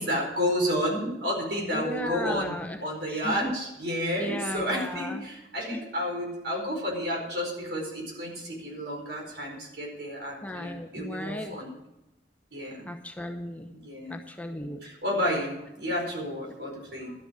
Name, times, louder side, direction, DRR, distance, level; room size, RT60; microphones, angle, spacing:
voice 1, 0.0-11.7 12.5-12.9 13.7-14.1 14.8-17.1, equal, 75° right, -1 dB, 4.7 m, -31 dB
voice 2, 1.7-2.8 3.1-3.5 4.2-5.3 5.7-5.8 10.4-11.6 12.9-13.7 14.1-14.8, left 1 dB, 10° left, 3 dB, 0.8 m, -35 dB
12.5 x 6.9 x 8.8 m, 0.94 s
head